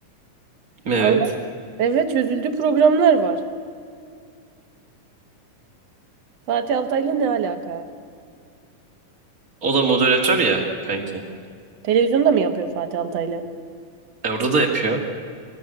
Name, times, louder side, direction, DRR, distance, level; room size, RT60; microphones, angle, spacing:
voice 1, 0.8-1.2 9.6-11.2 14.2-15.0, right 4 dB, 30° right, 1 dB, 2.4 m, -20 dB
voice 2, 1.8-3.4 6.5-7.8 11.8-13.4, right 6 dB, 60° right, 8 dB, 2.0 m, -20 dB
25.0 x 15.0 x 7.8 m, 2.2 s
omnidirectional pair, 3.8 m